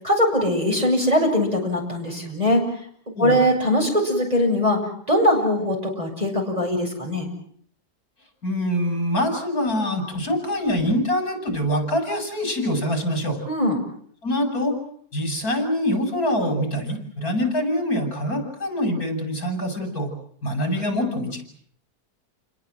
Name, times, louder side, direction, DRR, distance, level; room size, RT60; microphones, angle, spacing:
voice 1, 0.0-2.7 3.2-4.8 5.1-7.3 13.5-13.8, left 1 dB, 25° right, 1 dB, 7.6 m, -21 dB
voice 2, 8.4-13.4 14.2-14.8 15.1-20.1 20.4-21.4, equal, 65° left, 5 dB, 6.7 m, -24 dB
29.5 x 21.0 x 7.8 m, 0.62 s
omnidirectional pair, 1.7 m